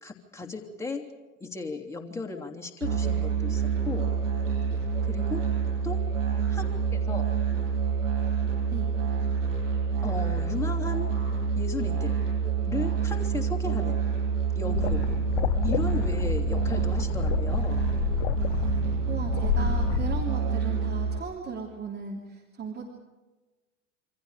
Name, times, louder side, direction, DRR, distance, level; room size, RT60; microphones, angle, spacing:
voice 1, 0.0-1.1 1.4-4.1 5.0-5.5 5.8-6.0 6.5-6.6 6.9-7.2 10.0-11.1 11.6-12.2 12.7-14.0 14.5-15.1 15.6-17.8, left 4 dB, 5° left, 0 dB, 3.1 m, -35 dB
Musical instrument, 2.8-21.2, right 6 dB, 80° right, 7.9 m, -27 dB
sound 1, 14.7-20.2, left 14 dB, 55° left, 0.8 m, -30 dB
voice 2, 19.1-22.9, right 5 dB, 25° right, 1 dB, 3.1 m, -36 dB
27.5 x 25.0 x 5.1 m, 1.2 s
figure-of-eight pair, 80°, 38 cm